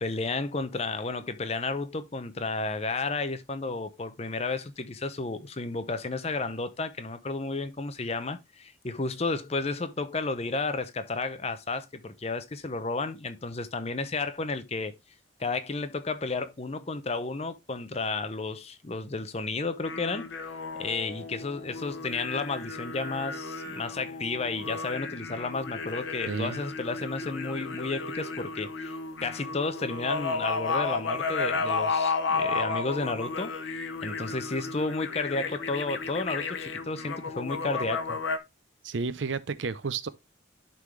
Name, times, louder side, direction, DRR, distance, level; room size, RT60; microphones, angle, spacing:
voice 1, 0.0-15.0 15.4-20.3 20.8-28.9 29.2-38.2, left 3 dB, 30° left, 0.7 m, -32 dB
sound 1, 19.8-38.4, left 4 dB, 75° left, 0.9 m, -33 dB
voice 2, 26.3-26.6 38.8-40.1, right 4 dB, 65° right, 0.6 m, -31 dB
11.5 x 3.8 x 3.2 m
head